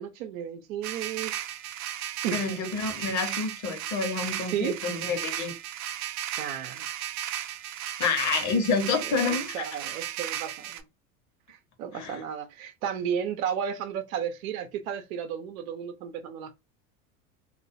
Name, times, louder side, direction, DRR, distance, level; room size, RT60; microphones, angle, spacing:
voice 1, 0.0-1.3 2.2-2.4 4.4-4.8 6.4-6.9 9.0-10.8 11.5-16.5, right 8 dB, 70° right, 0.7 m, -33 dB
sound 1, 0.8-10.8, right 11 dB, 45° right, 0.4 m, -35 dB
voice 2, 2.3-5.5 8.0-9.7 11.9-12.2, left 5 dB, 45° left, 0.9 m, -28 dB
2.4 x 2.2 x 2.6 m
hypercardioid pair, 90°, 42 cm